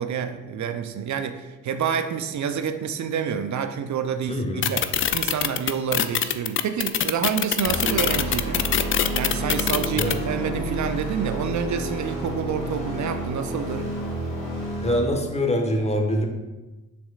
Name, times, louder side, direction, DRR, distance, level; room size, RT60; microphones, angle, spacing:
voice 1, 0.0-4.8 5.1-8.7 9.1-13.9, right 7 dB, 40° right, 9 dB, 0.6 m, -28 dB
voice 2, 4.3-4.7 10.0-10.1 14.8-16.3, equal, 15° left, 2 dB, 1.3 m, -24 dB
sound 1, 4.6-10.1, left 10 dB, 30° left, 0.4 m, -23 dB
sound 2, 7.6-15.0, right 1 dB, 85° left, 2.0 m, -30 dB
6.9 x 6.1 x 2.4 m, 1.1 s
figure-of-eight pair, 40°, 44 cm